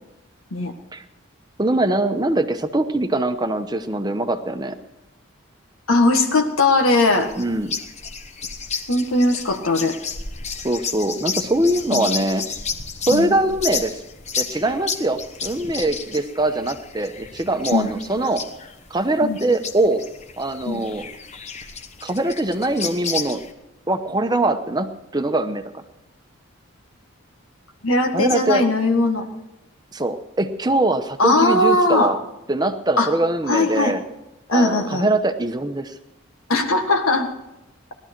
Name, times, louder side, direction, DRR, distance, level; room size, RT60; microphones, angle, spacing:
voice 1, 1.6-4.8 7.4-7.7 10.6-12.4 13.1-14.0 14.4-18.4 18.9-20.1 20.4-21.1 22.0-23.4 23.9-25.8 28.1-28.6 29.9-32.2 32.5-34.0 34.5-35.9, right 2 dB, 20° right, 8 dB, 0.9 m, -22 dB
voice 2, 5.9-7.3 8.9-10.0 11.9-12.1 13.1-13.3 17.7-17.9 19.2-19.4 20.7-20.8 27.8-29.3 31.2-32.1 33.0-33.1 33.5-33.9 34.5-35.0 36.5-37.3, left 2 dB, 85° left, 3 dB, 1.6 m, -19 dB
sound 1, 7.1-23.5, left 5 dB, 35° left, 1.0 m, -32 dB
18.5 x 12.5 x 4.5 m, 0.93 s
head